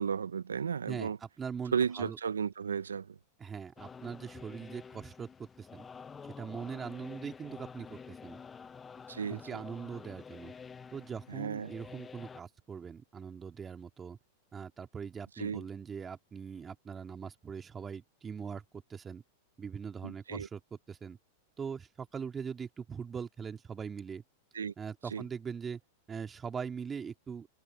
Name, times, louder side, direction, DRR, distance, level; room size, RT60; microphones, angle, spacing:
voice 1, 0.0-1.2 1.7-3.2 9.1-9.6 11.3-11.7 15.4-15.6 20.0-20.5 24.5-24.7 25.1-25.2, right 6 dB, 85° right, 0.5 m, -34 dB
voice 2, 0.9-2.2 3.4-5.3 5.6-5.8 6.2-8.4 9.3-10.5 10.9-14.2 14.5-19.2 19.6-21.2 21.6-24.2 24.8-25.8 26.1-27.5, right 6 dB, 20° right, 3.2 m, -41 dB
sound 1, 3.8-12.4, left 6 dB, 20° left, 0.5 m, -49 dB
hypercardioid pair, 105°, 0 cm